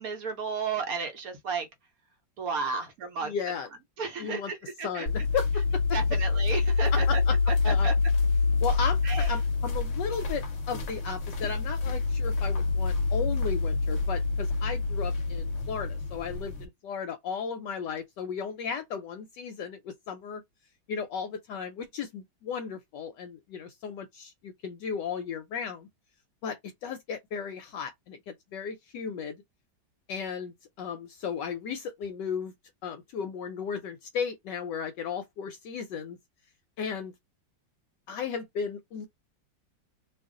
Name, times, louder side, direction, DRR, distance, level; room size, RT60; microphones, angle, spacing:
voice 1, 0.0-1.7 2.4-3.3 4.0-5.2 5.9-7.2 7.7-7.9 9.0-9.3, right 5 dB, 60° right, 1.0 m, -33 dB
voice 2, 3.2-3.7 4.2-4.5 4.8-6.0 6.9-7.4 7.6-7.9 8.6-20.4 20.9-25.9 26.4-29.4 30.1-32.5 32.8-36.2 36.8-37.1 38.1-39.1, left 6 dB, 75° left, 1.1 m, -35 dB
sound 1, 5.1-16.6, left 4 dB, 55° left, 0.9 m, -27 dB
2.8 x 2.5 x 3.6 m
omnidirectional pair, 2.1 m